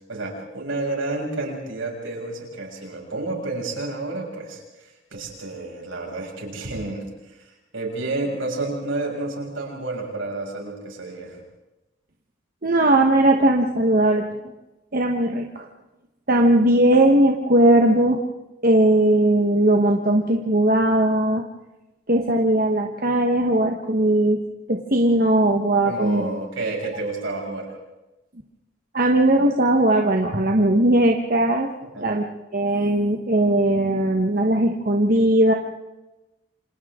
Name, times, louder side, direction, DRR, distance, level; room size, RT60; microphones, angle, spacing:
voice 1, 0.1-4.6 5.1-7.0 7.7-11.4 25.8-27.7 31.8-32.1, right 2 dB, 75° right, -1 dB, 6.5 m, -30 dB
voice 2, 12.6-14.2 14.9-15.7 16.3-18.2 18.6-21.4 22.1-24.4 24.7-26.2 28.9-31.7 32.0-32.2 32.5-35.5, right 1 dB, 45° right, 2 dB, 1.2 m, -18 dB
28.5 x 26.5 x 3.7 m, 1.0 s
head